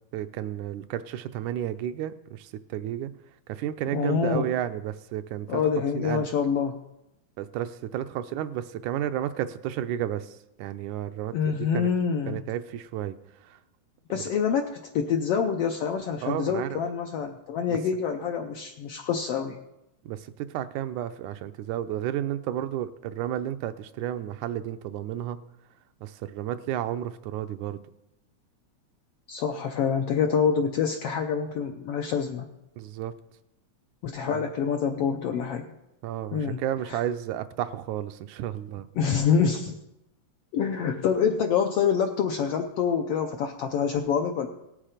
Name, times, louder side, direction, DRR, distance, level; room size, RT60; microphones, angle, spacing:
voice 1, 0.1-3.1 3.5-5.6 5.9-6.3 7.4-11.9 12.3-13.2 13.4-13.6 14.1-14.4 16.2-16.8 17.7-17.8 20.1-25.4 26.0-27.8 32.8-33.1 34.2-34.5 36.0-38.9, right 11 dB, 80° right, 10 dB, 2.0 m, -32 dB
voice 2, 3.9-4.4 5.5-6.8 11.3-12.4 14.1-19.6 29.3-32.5 34.0-35.7 36.3-36.6 36.9-37.0 39.0-39.8 40.5-44.5, left 7 dB, 75° left, 4 dB, 1.4 m, -26 dB
18.0 x 7.5 x 5.0 m, 0.89 s
omnidirectional pair, 3.4 m